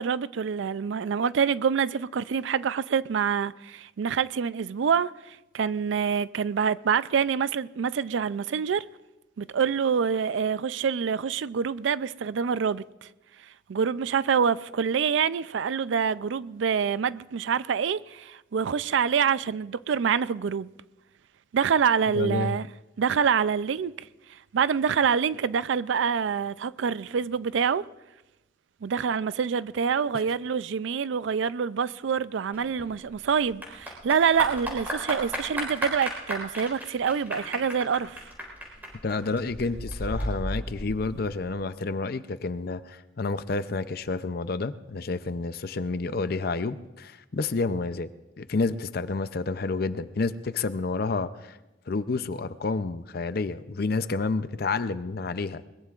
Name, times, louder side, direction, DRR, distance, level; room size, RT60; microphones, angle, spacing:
voice 1, 0.0-8.8 9.4-12.8 13.7-20.7 21.5-22.7 23.0-23.9 24.5-27.8 28.8-38.2, right 6 dB, 75° right, 0.4 m, -26 dB
voice 2, 22.1-22.6 39.0-48.1 48.4-51.6 51.9-55.6, left 3 dB, 50° left, 0.5 m, -29 dB
Clapping / Applause, 32.5-41.5, equal, 10° right, 4.2 m, -35 dB
21.5 x 21.0 x 2.4 m
head